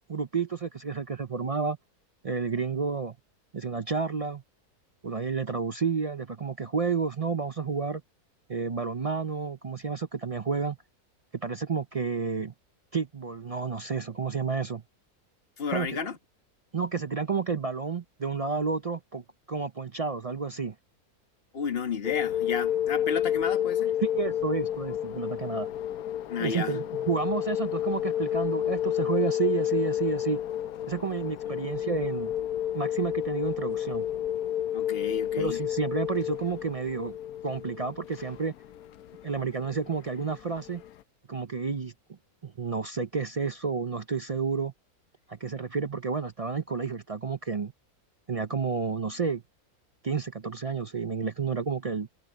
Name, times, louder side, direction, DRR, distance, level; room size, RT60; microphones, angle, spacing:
voice 1, 0.1-1.8 2.2-3.2 3.5-4.4 5.0-8.0 8.5-10.8 11.4-12.5 12.9-14.8 15.7-16.0 16.7-20.7 24.0-25.7 26.4-30.4 30.9-32.3 32.7-34.1 35.4-37.2 37.4-38.5 39.2-40.8 41.3-41.9 42.4-44.7 45.3-47.7 48.3-49.4 50.0-52.1, right 5 dB, 65° right, 0.3 m, -30 dB
voice 2, 15.6-16.2 21.5-23.9 26.3-26.8 31.5-31.6 34.7-35.6, left 6 dB, 40° left, 1.7 m, -32 dB
sound 1, 22.0-40.9, left 10 dB, 75° left, 1.2 m, -30 dB
omnidirectional pair, 1.6 m